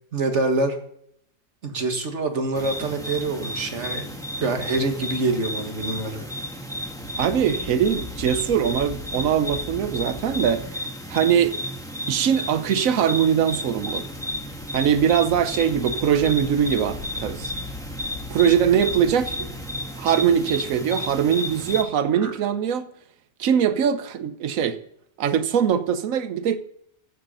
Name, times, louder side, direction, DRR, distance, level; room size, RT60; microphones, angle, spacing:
voice 1, 0.1-0.8 1.6-4.1 4.4-6.3 22.2-22.3, right 3 dB, 55° right, 5 dB, 1.9 m, -25 dB
sound 1, 2.6-21.8, left 1 dB, 5° left, 1.5 m, -33 dB
sound 2, 6.9-10.7 13.5-20.8, left 3 dB, 75° left, 2.8 m, -41 dB
voice 2, 7.2-10.7 11.1-11.5 12.1-14.0 14.7-17.5 18.3-19.4 20.0-22.9 23.4-24.8 25.2-26.6, right 8 dB, 75° right, 11 dB, 1.2 m, -21 dB
14.0 x 7.7 x 5.6 m, 0.70 s
omnidirectional pair, 1.4 m